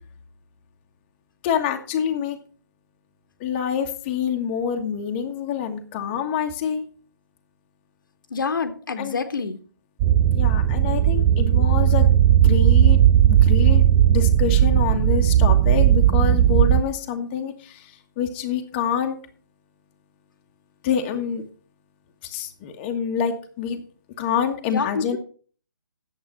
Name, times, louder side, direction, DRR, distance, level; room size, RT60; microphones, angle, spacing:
voice 1, 1.4-2.4 3.4-6.8 9.0-9.2 10.3-12.1 12.4-13.0 13.3-13.8 14.1-17.9 18.2-19.2 20.8-21.4 22.2-23.8 24.2-25.2, left 8 dB, 25° left, 3 dB, 1.4 m, -26 dB
voice 2, 8.3-9.6 24.7-25.2, left 5 dB, 65° left, 8 dB, 1.6 m, -27 dB
sound 1, 10.0-16.8, right 11 dB, 15° right, 0.4 m, -16 dB
9.6 x 7.8 x 5.9 m, 0.41 s
hypercardioid pair, 150°, 12 cm